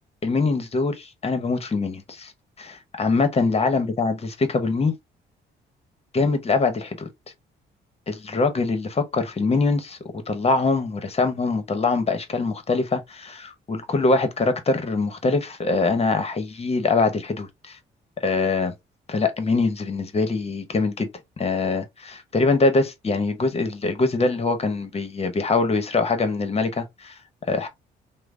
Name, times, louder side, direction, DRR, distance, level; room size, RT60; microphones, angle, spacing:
voice 1, 0.2-2.3 2.6-4.9 6.1-7.1 8.1-17.8 18.2-18.7 19.1-21.1 21.4-27.1 27.5-27.7, left 3 dB, 30° left, 0.9 m, -23 dB
3.2 x 2.1 x 3.6 m
cardioid pair, 90°, 20 cm